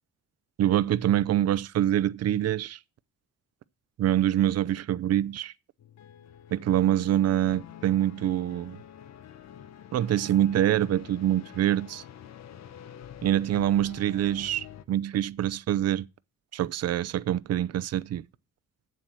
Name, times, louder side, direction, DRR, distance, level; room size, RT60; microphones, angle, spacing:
voice 1, 0.6-2.8 4.0-5.5 6.5-8.8 9.9-12.0 13.2-16.1 16.5-18.2, right 12 dB, 55° right, 0.6 m, -25 dB
sound 1, 5.8-14.8, left 10 dB, 60° left, 0.8 m, -47 dB
8.4 x 7.5 x 6.2 m
cardioid pair, 90°, 30 cm